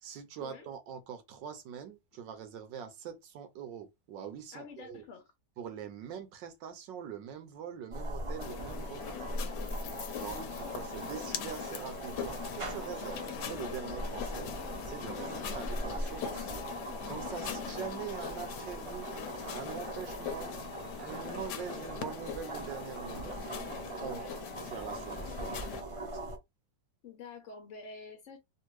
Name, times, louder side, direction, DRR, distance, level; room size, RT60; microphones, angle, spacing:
voice 1, 0.0-5.0 5.6-9.2 10.1-14.5 14.8-16.5 17.1-19.1 19.5-20.5 21.0-26.2, right 8 dB, 90° right, 1.4 m, -43 dB
voice 2, 4.5-5.3 10.3-11.1 15.2-15.5 17.4-17.7 19.9-20.2 24.0-24.3 27.0-28.4, left 5 dB, 55° left, 0.9 m, -48 dB
sound 1, 7.9-26.4, right 1 dB, 50° right, 0.4 m, -41 dB
sound 2, 8.4-25.8, left 9 dB, 75° left, 1.2 m, -42 dB
3.4 x 2.6 x 3.1 m
omnidirectional pair, 1.9 m